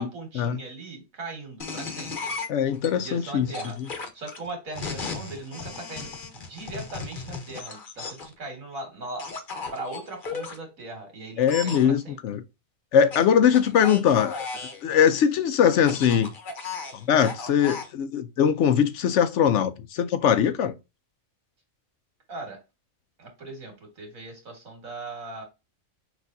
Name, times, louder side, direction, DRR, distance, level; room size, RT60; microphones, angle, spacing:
voice 1, 0.0-2.3 2.9-9.3 9.7-12.2 22.3-22.6 23.2-25.4, right 2 dB, 80° right, 2.3 m, -39 dB
sound 1, 1.6-2.9 3.5-8.3 9.2-10.6 11.4-11.8 13.1-14.8 15.7-17.9, left 4 dB, 40° left, 1.0 m, -36 dB
voice 2, 2.5-3.5 11.4-12.4 12.9-14.5 14.8-16.3 17.1-20.7, left 8 dB, 70° left, 0.8 m, -21 dB
6.0 x 3.2 x 2.6 m
omnidirectional pair, 1.4 m